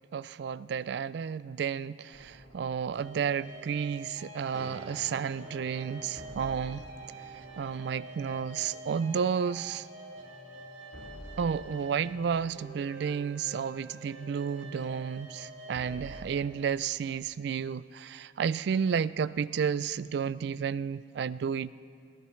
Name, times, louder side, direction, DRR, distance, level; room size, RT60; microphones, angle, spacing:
voice 1, 0.1-6.9 7.6-9.9 11.4-21.7, right 7 dB, 60° right, 0.3 m, -32 dB
sound 1, 2.1-16.4, right 1 dB, 85° right, 1.9 m, -46 dB
21.5 x 18.5 x 3.2 m
head